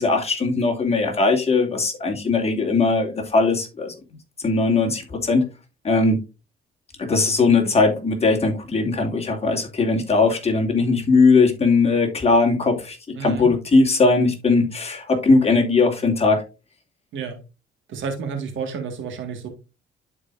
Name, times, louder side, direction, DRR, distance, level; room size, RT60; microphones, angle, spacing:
voice 1, 0.0-3.9 4.4-5.5 5.8-6.2 7.0-16.4, left 3 dB, 30° left, 2.6 m, -19 dB
voice 2, 13.2-13.5 17.1-17.4 17.9-19.5, right 6 dB, 75° right, 1.9 m, -30 dB
11.5 x 4.8 x 2.6 m
cardioid pair, 90°, 20 cm